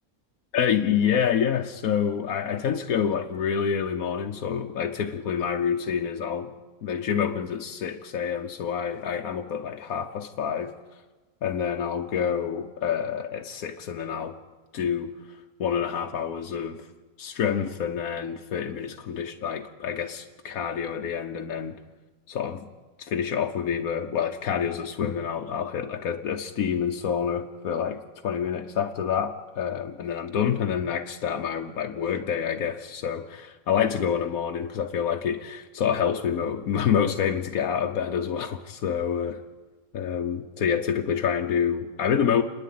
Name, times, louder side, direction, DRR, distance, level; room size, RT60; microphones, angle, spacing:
voice 1, 0.5-6.5 6.8-10.7 11.4-14.3 14.7-15.1 15.6-16.8 17.2-21.8 22.3-22.7 23.0-39.4 39.9-42.4, left 8 dB, 85° left, 3 dB, 1.4 m, -27 dB
30.0 x 10.5 x 9.4 m, 1.3 s
omnidirectional pair, 1.5 m